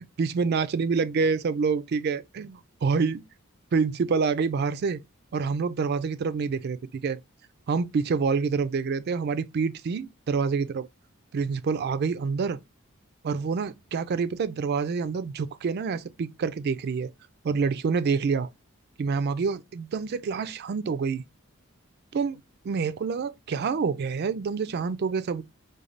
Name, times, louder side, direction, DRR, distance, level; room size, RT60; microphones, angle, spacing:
voice 1, 0.0-3.2 3.7-5.0 5.3-7.2 7.7-10.9 11.3-12.6 13.2-17.1 17.4-18.5 19.0-21.2 22.1-25.4, right 5 dB, 50° right, 0.3 m, -27 dB
3.7 x 2.2 x 3.2 m
head